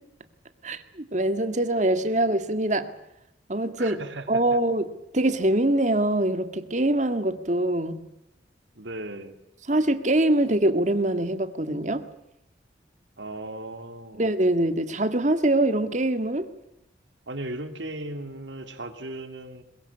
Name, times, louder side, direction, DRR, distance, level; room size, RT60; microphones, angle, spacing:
voice 1, 0.6-2.9 3.5-4.0 4.3-4.9 5.1-8.0 9.7-12.0 14.1-16.5, right 1 dB, 40° right, 1.8 m, -23 dB
voice 2, 3.8-4.6 8.7-9.3 13.2-14.2 17.3-19.6, right 1 dB, 80° right, 2.9 m, -37 dB
22.0 x 22.0 x 8.6 m
head